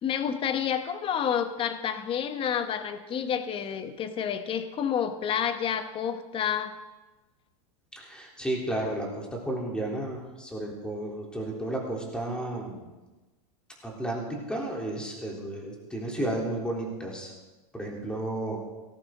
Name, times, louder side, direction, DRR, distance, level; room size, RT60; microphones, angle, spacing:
voice 1, 0.0-6.7, left 8 dB, 30° left, 9 dB, 1.1 m, -29 dB
voice 2, 8.0-12.9 13.8-17.3 17.7-18.6, right 1 dB, 5° left, -2 dB, 3.5 m, -33 dB
17.5 x 14.0 x 3.8 m, 1.2 s
hypercardioid pair, 125°, 19 cm